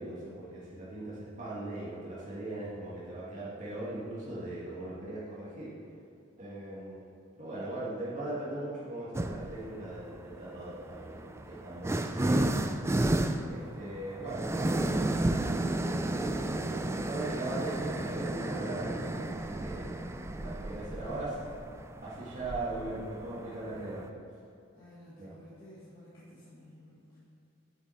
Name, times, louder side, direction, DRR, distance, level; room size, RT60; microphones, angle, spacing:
voice 1, 0.0-5.7 6.4-7.0 7.4-12.5 13.5-20.0 20.4-21.4 22.0-24.1 25.2-25.3, right 2 dB, 40° right, -8 dB, 1.7 m, -39 dB
sound 1, 9.1-9.6 10.6-24.1, right 1 dB, 15° right, 0.3 m, -32 dB
voice 2, 20.4-21.3 24.8-27.2, equal, 25° left, -10 dB, 1.8 m, -52 dB
8.3 x 8.2 x 4.4 m, 2.6 s
head